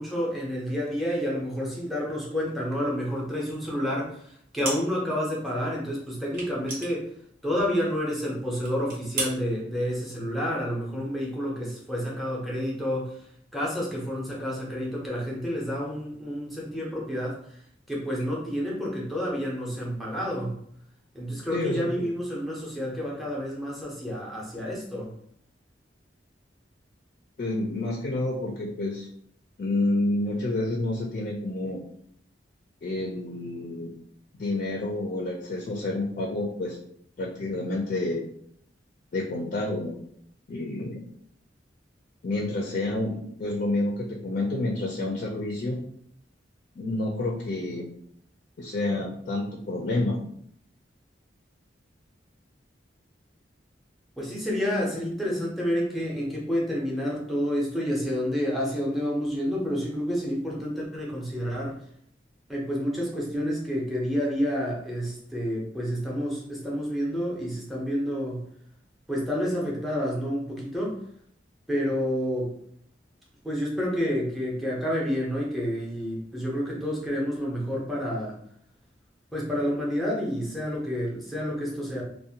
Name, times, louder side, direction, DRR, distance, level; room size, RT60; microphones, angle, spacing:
voice 1, 0.0-7.1 7.4-13.3 13.5-17.6 17.9-20.6 21.1-25.1 54.2-61.8 62.5-68.5 69.1-71.0 71.7-72.6 73.4-78.4 79.3-82.0, equal, ahead, -5 dB, 0.6 m, -29 dB
sound 1, 4.6-5.2 5.4-5.5 6.3-7.8 8.1-8.2 8.6-9.4, right 2 dB, 50° right, 0.8 m, -34 dB
voice 2, 21.5-21.9 27.4-29.1 29.6-31.8 32.8-33.9 34.4-36.8 37.2-38.2 39.1-40.0 40.5-41.0 42.2-45.8 46.8-47.9 48.6-50.2, left 2 dB, 45° left, -1 dB, 0.4 m, -29 dB
2.5 x 2.1 x 2.7 m, 0.66 s
head